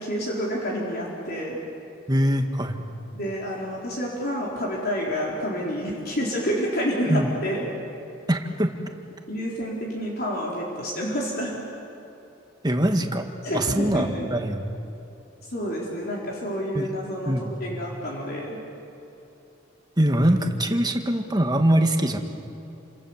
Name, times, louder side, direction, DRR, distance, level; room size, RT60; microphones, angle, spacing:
voice 1, 0.0-1.6 3.1-7.7 9.3-11.6 13.4-14.2 15.5-17.3 17.6-18.6, equal, 50° left, -3 dB, 4.1 m, -28 dB
voice 2, 2.1-2.8 7.1-7.3 8.3-8.7 12.6-13.3 13.5-14.6 16.7-16.9 17.3-17.5 20.0-22.2, right 1 dB, 20° right, 5 dB, 1.7 m, -22 dB
29.0 x 26.5 x 7.3 m, 2.9 s
head